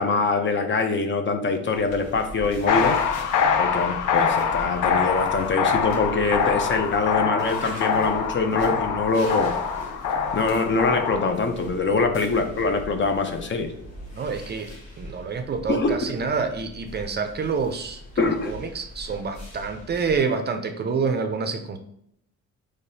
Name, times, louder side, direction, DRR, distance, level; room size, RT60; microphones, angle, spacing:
voice 1, 0.0-3.0 3.6-9.5 10.3-13.7 15.7-16.0 18.2-18.5, left 3 dB, 40° left, 6 dB, 0.6 m, -24 dB
sound 1, 1.7-20.2, left 1 dB, 60° left, 1.3 m, -41 dB
sound 2, 2.7-11.3, left 6 dB, 85° left, 0.5 m, -24 dB
voice 2, 14.1-14.7 15.0-21.8, right 5 dB, 35° right, 7 dB, 0.4 m, -27 dB
3.9 x 3.2 x 2.7 m, 0.72 s
cardioid pair, 90°, 30 cm